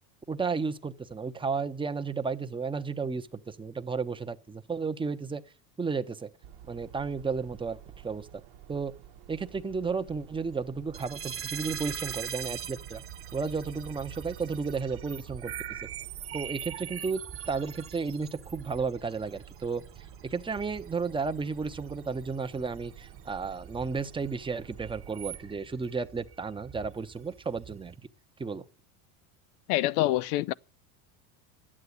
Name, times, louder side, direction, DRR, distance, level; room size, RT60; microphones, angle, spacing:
voice 1, 0.3-5.4 5.8-6.3 6.7-8.4 8.7-8.9 9.3-13.0 13.3-15.8 16.3-19.8 20.2-27.9 28.4-28.6, right 4 dB, 10° right, 0.8 m, -33 dB
sound 1, 6.4-25.6, right 10 dB, 65° right, 1.1 m, -50 dB
sound 2, 10.9-28.0, right 9 dB, 30° right, 1.3 m, -43 dB
voice 2, 29.7-30.5, left 16 dB, 85° left, 0.6 m, -26 dB
12.0 x 8.7 x 8.0 m
supercardioid pair, 110°, 44 cm